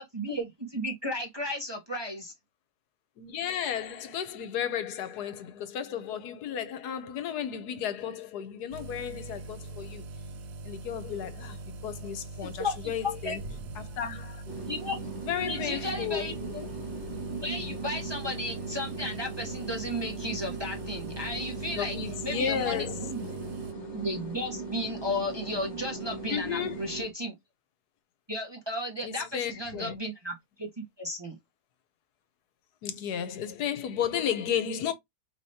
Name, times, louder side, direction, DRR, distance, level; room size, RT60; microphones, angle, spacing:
voice 1, 0.0-2.3 12.4-12.9 13.2-13.4 14.7-15.0 15.5-16.9 17.4-22.0 22.2-23.5 23.9-27.3 28.3-31.4, left 1 dB, 20° right, 0.9 m, -34 dB
voice 2, 3.2-10.0 10.6-13.4 13.8-14.4 15.2-16.4 21.7-23.4 26.3-26.8 29.0-30.0 32.8-34.9, left 9 dB, 80° left, 1.3 m, -33 dB
sound 1, 8.7-23.7, right 2 dB, 70° right, 1.0 m, -42 dB
sound 2, 14.5-27.1, right 3 dB, 45° left, 1.5 m, -39 dB
4.9 x 3.3 x 2.7 m
omnidirectional pair, 1.7 m